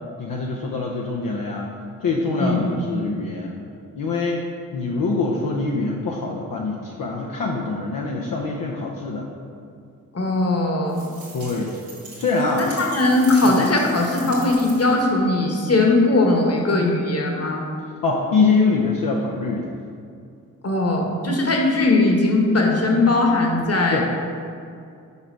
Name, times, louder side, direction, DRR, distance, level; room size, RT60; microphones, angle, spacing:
voice 1, 0.2-1.7 2.0-3.6 3.9-4.4 4.7-9.3 11.3-11.7 12.2-12.7 13.4-13.6 18.0-19.7 23.9-24.0, left 3 dB, 70° left, -2 dB, 0.7 m, -24 dB
voice 2, 10.1-10.9 12.6-17.7 20.6-24.0, left 2 dB, 45° left, 0 dB, 1.3 m, -19 dB
sound 1, 10.9-15.1, right 3 dB, 80° right, 1.5 m, -40 dB
5.6 x 4.9 x 4.5 m, 2.4 s
cardioid pair, 50°, 35 cm